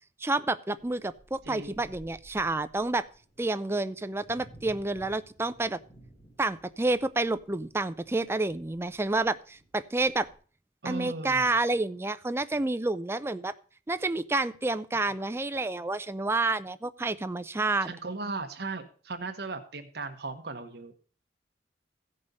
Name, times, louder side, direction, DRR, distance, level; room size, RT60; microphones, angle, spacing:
voice 1, 0.2-3.1 3.4-5.8 6.4-10.3 10.8-13.5 13.9-17.9, right 2 dB, 15° right, 12 dB, 0.4 m, -29 dB
sound 1, 0.8-10.3, right 1 dB, 35° left, 3.2 m, -56 dB
voice 2, 1.4-1.9 10.8-11.5 17.8-20.9, right 3 dB, 60° right, 6 dB, 1.0 m, -37 dB
15.5 x 5.4 x 5.3 m, 0.41 s
head